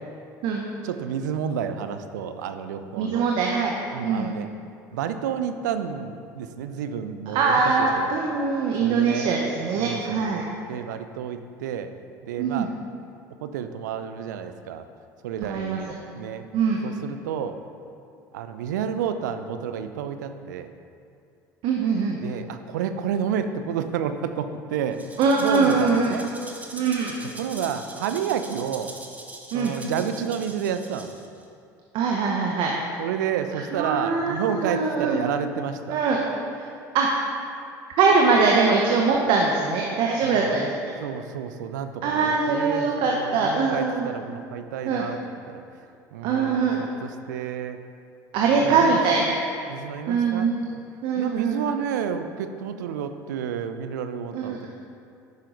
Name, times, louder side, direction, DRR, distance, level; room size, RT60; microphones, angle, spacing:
voice 1, 0.8-3.2 3.9-4.5 4.9-8.2 8.8-9.4 9.8-10.4 10.7-11.9 12.2-12.7 13.4-14.9 15.2-16.5 16.8-17.6 18.3-20.7 22.2-25.0 25.4-26.2 27.4-28.9 29.5-31.1 33.0-36.0 40.2-40.5 41.0-45.2 45.5-45.6 46.1-47.8 48.6-49.4 49.7-50.8 51.2-54.7, right 8 dB, 85° right, 9 dB, 0.5 m, -30 dB
voice 2, 2.9-4.3 7.3-10.4 12.4-12.7 15.4-15.9 16.5-16.8 21.6-22.2 25.2-26.2 26.7-27.1 29.5-29.7 31.9-32.7 33.7-35.2 35.9-36.2 36.6-36.7 36.9-37.1 38.0-40.8 42.0-44.1 44.8-45.0 46.2-46.8 48.3-49.4 50.1-50.6 51.0-51.7 54.3-54.7, right 4 dB, 65° right, -1 dB, 0.9 m, -22 dB
Rattle (instrument), 24.9-31.4, right 2 dB, 15° right, 1.1 m, -42 dB
10.5 x 5.7 x 3.9 m, 2.5 s
hypercardioid pair, 75°, 9 cm